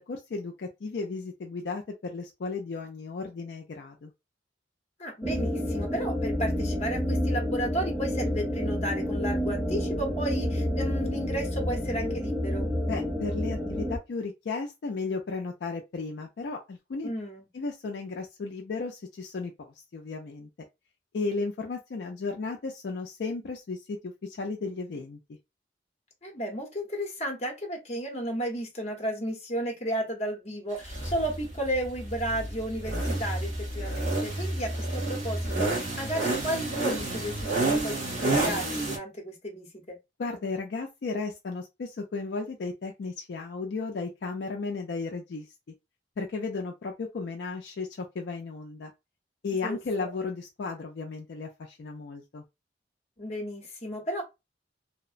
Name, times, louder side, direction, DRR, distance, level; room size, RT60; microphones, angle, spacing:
voice 1, 0.0-4.1 12.9-17.1 17.5-19.5 19.9-20.5 21.1-25.2 40.2-45.5 46.2-48.9 49.4-52.4, left 4 dB, 65° left, 0.4 m, -34 dB
voice 2, 5.0-12.7 17.0-17.5 26.2-40.0 49.6-50.1 53.2-54.2, equal, 35° left, 0.8 m, -33 dB
sound 1, 5.2-14.0, equal, 5° right, 0.5 m, -29 dB
sound 2, 30.8-39.0, right 2 dB, 40° right, 1.0 m, -30 dB
2.8 x 2.1 x 2.4 m
head